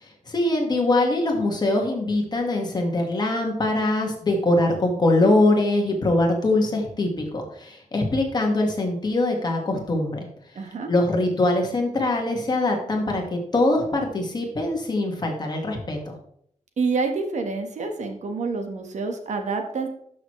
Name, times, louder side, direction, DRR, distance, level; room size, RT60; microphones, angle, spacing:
voice 1, 0.0-10.2 10.9-16.1, left 2 dB, 35° left, 1 dB, 1.8 m, -23 dB
voice 2, 10.5-10.9 16.8-19.9, right 4 dB, 70° right, 5 dB, 1.4 m, -27 dB
12.0 x 6.2 x 3.2 m, 0.66 s
wide cardioid pair, 170°, 13 cm